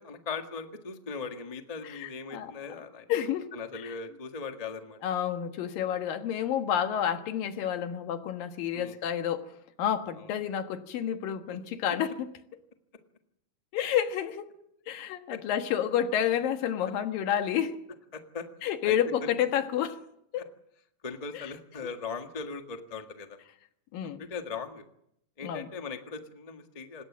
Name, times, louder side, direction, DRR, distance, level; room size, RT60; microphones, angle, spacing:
voice 1, 0.0-3.1 3.5-5.0 8.7-9.0 10.2-10.3 11.5-11.6 15.3-15.4 18.1-18.5 18.8-19.0 19.2-19.3 20.3-20.4 21.0-23.4 24.0-24.8 25.4-27.0, left 5 dB, 25° left, 0.7 m, -39 dB
voice 2, 1.8-2.5 3.1-3.5 3.8-3.9 5.0-9.5 9.8-12.3 13.7-14.4 14.9-17.8 18.6-20.0 20.3-20.5 21.3-21.4 23.9-24.2 25.4-25.7, left 9 dB, 85° left, 3.3 m, -30 dB
26.0 x 20.0 x 7.4 m
omnidirectional pair, 3.9 m